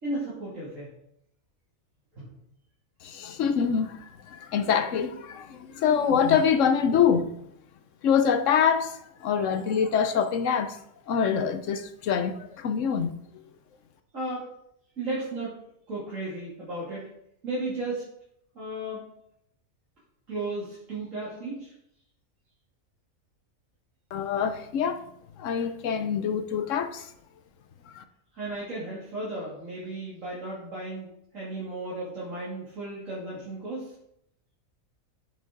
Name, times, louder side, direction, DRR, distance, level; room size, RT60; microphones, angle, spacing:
voice 1, 0.0-0.9 2.1-2.3 14.1-14.5 15.0-15.5 15.9-17.1 17.4-18.1 18.5-19.0 20.3-21.7 28.3-31.1 31.3-33.9, right 2 dB, 65° right, 3.2 m, -34 dB
voice 2, 3.0-7.3 8.0-10.8 11.1-13.1 24.1-25.0 25.4-27.1 27.9-28.0, left 7 dB, 65° left, 1.1 m, -25 dB
8.2 x 7.4 x 3.8 m
omnidirectional pair, 1.5 m